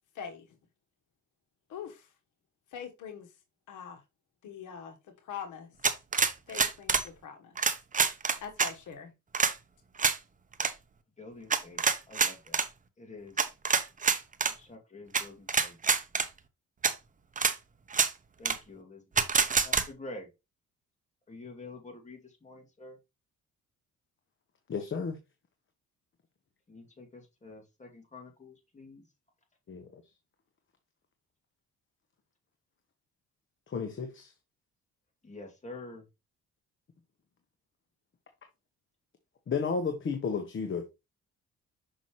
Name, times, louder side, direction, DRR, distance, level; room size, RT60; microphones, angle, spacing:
voice 1, 0.1-0.6 1.7-2.1 2.7-3.3 3.7-4.0 4.4-5.0 5.2-5.8 6.5-7.6 8.4-9.1, left 7 dB, 80° left, 1.3 m, -43 dB
sound 1, 5.8-7.1 7.6-8.7 9.3-9.5 10.0-10.2 10.5-10.7 11.5-12.7 13.4-14.5 15.1-15.2 15.5-16.3 16.8-16.9 17.4-17.5 17.9-18.1 18.4-18.6 19.2-19.8, right 5 dB, 25° right, 0.8 m, -26 dB
voice 2, 11.2-12.6 13.0-13.4 14.5-15.8 18.4-19.3 19.6-20.3 21.3-23.0 26.7-29.0 35.2-36.0, left 2 dB, 25° left, 2.4 m, -47 dB
voice 3, 24.7-25.2 29.7-30.0 33.7-34.3 39.5-40.9, left 5 dB, 40° left, 1.1 m, -32 dB
6.2 x 5.5 x 3.0 m
cardioid pair, 90°, 30 cm